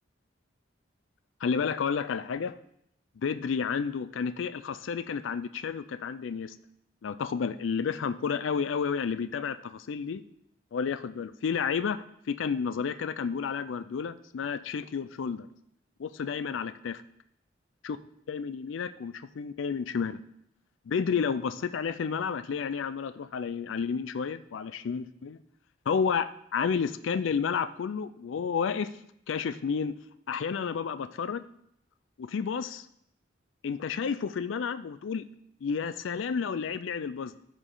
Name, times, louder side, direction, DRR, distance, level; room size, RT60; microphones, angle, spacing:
voice 1, 1.4-2.6 3.2-6.6 7.0-10.2 10.7-12.0 12.3-15.5 16.0-17.0 17.8-18.0 18.3-20.2 20.9-25.4 25.9-28.9 29.3-29.9 30.3-31.4 32.2-32.9 33.6-35.2 35.6-37.4, left 6 dB, 85° left, 13 dB, 0.4 m, -31 dB
13.5 x 5.1 x 3.8 m, 0.74 s
head